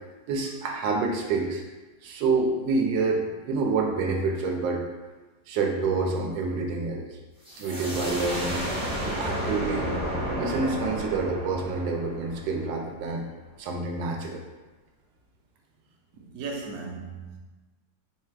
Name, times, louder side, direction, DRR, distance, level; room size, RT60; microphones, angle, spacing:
voice 1, 0.3-1.6 2.0-4.8 5.5-7.2 7.6-8.6 9.0-9.9 10.4-13.2 13.6-14.4, right 4 dB, 85° right, 1 dB, 1.3 m, -27 dB
sound 1, 7.4-13.0, equal, 5° right, 0.4 m, -32 dB
voice 2, 16.1-17.4, right 4 dB, 65° right, -1 dB, 0.9 m, -37 dB
3.5 x 2.3 x 4.4 m, 1.2 s
omnidirectional pair, 2.0 m